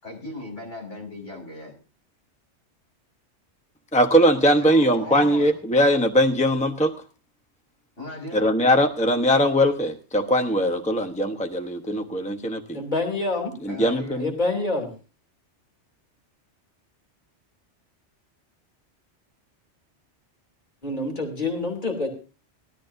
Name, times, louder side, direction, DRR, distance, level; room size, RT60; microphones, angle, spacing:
voice 1, 0.0-1.8 4.6-5.6 8.0-8.5 13.7-14.3, left 2 dB, 85° left, 0 dB, 5.5 m, -37 dB
voice 2, 3.9-6.9 8.3-12.8 13.6-14.3, equal, 5° left, 7 dB, 0.9 m, -21 dB
voice 3, 12.7-13.5 14.2-14.9 20.8-22.1, left 2 dB, 40° left, 1 dB, 2.9 m, -26 dB
20.0 x 13.0 x 2.7 m, 0.33 s
omnidirectional pair, 1.2 m